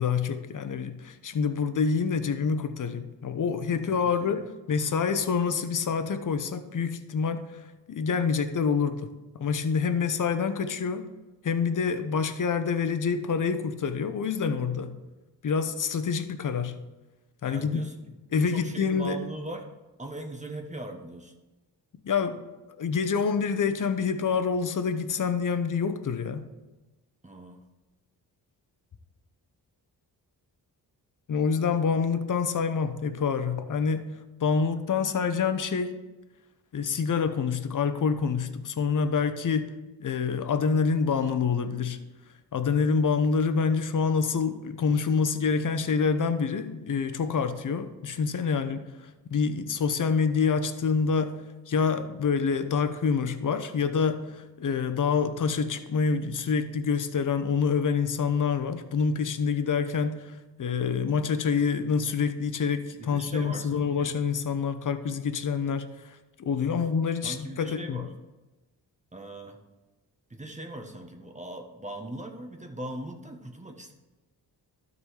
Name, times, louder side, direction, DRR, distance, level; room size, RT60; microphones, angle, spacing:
voice 1, 0.0-7.4 7.9-11.1 11.4-15.0 15.4-16.8 17.4-17.8 18.3-19.2 22.0-22.4 22.8-26.5 31.3-34.1 34.4-36.0 36.7-39.7 40.0-42.0 42.5-48.8 49.3-51.4 51.7-65.8 66.4-68.0, left 5 dB, 50° left, 10 dB, 0.9 m, -27 dB
voice 2, 4.0-4.4 17.5-19.7 20.0-21.3 27.2-27.6 63.0-64.1 66.5-66.9 67.2-68.1 69.1-69.6 70.3-73.9, right 1 dB, 15° right, 3 dB, 1.2 m, -40 dB
12.0 x 4.1 x 5.0 m, 1.1 s
cardioid pair, 60°, 41 cm